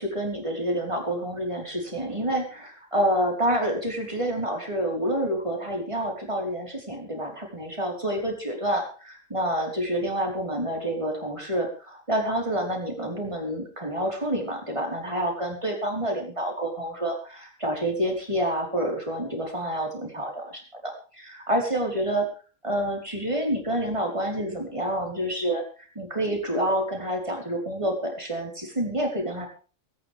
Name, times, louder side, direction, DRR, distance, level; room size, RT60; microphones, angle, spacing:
voice 1, 0.0-22.3 22.6-25.6 25.9-29.5, right 1 dB, 25° right, 1 dB, 4.8 m, -28 dB
23.0 x 10.5 x 3.6 m, 0.37 s
omnidirectional pair, 1.3 m